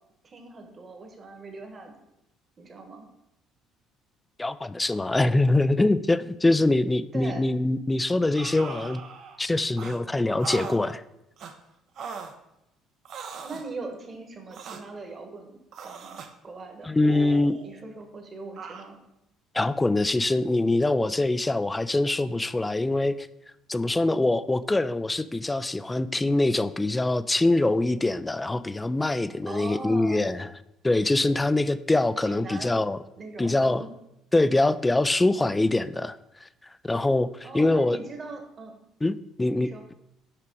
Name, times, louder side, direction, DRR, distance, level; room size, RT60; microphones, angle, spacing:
voice 1, 0.2-1.9 2.6-3.1 7.1-7.5 13.4-15.6 15.8-17.0 17.6-19.0 29.4-30.2 32.2-32.7 33.2-33.9 37.4-38.8 39.5-39.8, right 3 dB, 35° right, 4 dB, 1.3 m, -40 dB
voice 2, 4.4-9.0 9.4-11.0 16.9-17.6 19.5-23.3 23.7-30.5 30.8-33.0 33.4-33.8 34.3-36.5 36.8-38.0 39.0-39.9, left 2 dB, 15° left, 15 dB, 0.3 m, -24 dB
sound 1, 8.3-9.4 9.8-10.0 10.4-10.8 11.4-11.5 12.0-12.3 13.0-13.7 14.5-14.8 15.7-16.3 17.0-17.8 18.6-18.9, right 6 dB, 60° right, 0.7 m, -39 dB
5.8 x 5.0 x 4.6 m, 0.86 s
cardioid pair, 100°, 0 cm